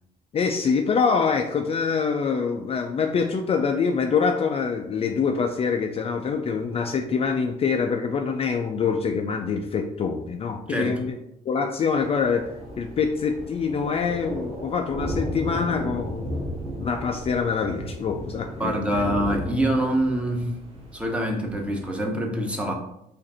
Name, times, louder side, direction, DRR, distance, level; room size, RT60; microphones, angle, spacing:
voice 1, 0.3-11.2 11.5-12.5 12.8-16.3 16.8-19.0, left 5 dB, 35° left, 4 dB, 0.4 m, -25 dB
voice 2, 10.7-11.0 18.6-20.5 20.9-22.7, right 1 dB, 5° right, 1 dB, 0.9 m, -25 dB
Thunder, 11.9-21.9, equal, 35° right, 1.7 m, -34 dB
4.9 x 2.6 x 4.2 m, 0.80 s
cardioid pair, 110°, 17 cm